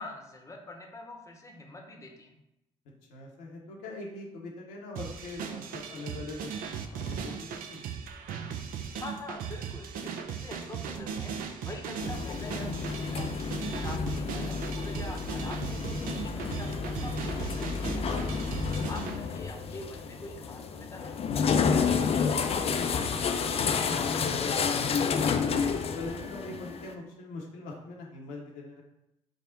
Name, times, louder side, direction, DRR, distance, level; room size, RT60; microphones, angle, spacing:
voice 1, 0.0-2.4 8.9-11.3 11.6-13.5 13.7-18.6 18.9-21.2, left 2 dB, 20° left, 2 dB, 0.8 m, -44 dB
voice 2, 3.1-6.5 6.9-7.9 13.7-14.0 21.6-24.5 24.8-25.0 25.2-25.5 25.9-28.8, left 2 dB, 70° left, -2 dB, 0.8 m, -42 dB
sound 1, 5.0-19.2, right 7 dB, 60° right, 0.4 m, -38 dB
sound 2, 12.0-26.9, left 5 dB, 35° left, 0.4 m, -30 dB
4.9 x 2.0 x 3.9 m, 0.85 s
figure-of-eight pair, 45°, 17 cm